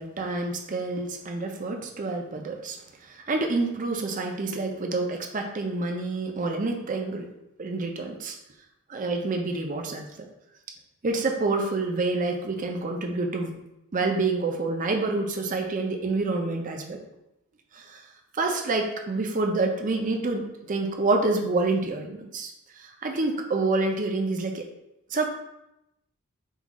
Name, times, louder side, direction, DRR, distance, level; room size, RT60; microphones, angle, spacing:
voice 1, 0.0-2.8 3.1-7.3 7.6-8.3 8.9-10.1 11.0-13.5 13.9-17.0 17.7-18.0 18.3-22.5 22.8-24.6 25.1-25.2, right 3 dB, 40° right, 3 dB, 0.5 m, -27 dB
5.4 x 2.4 x 3.6 m, 0.88 s
head